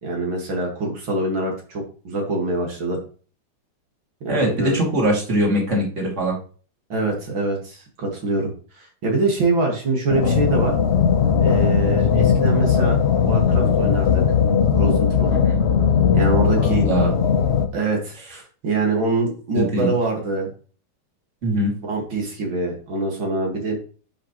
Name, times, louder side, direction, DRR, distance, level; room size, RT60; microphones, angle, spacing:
voice 1, 0.0-3.0 4.2-4.8 6.9-10.7 11.4-14.2 14.8-15.3 16.1-16.9 17.7-18.2 18.6-20.5 21.8-23.8, right 2 dB, 75° right, 0 dB, 2.9 m, -24 dB
voice 2, 4.3-6.3 15.4-15.6 16.8-17.1 19.5-19.9 21.4-21.7, right 1 dB, 35° right, -2 dB, 3.0 m, -21 dB
sound 1, 10.1-17.7, left 7 dB, 55° left, 0.7 m, -18 dB
10.5 x 5.7 x 3.1 m, 0.39 s
omnidirectional pair, 2.2 m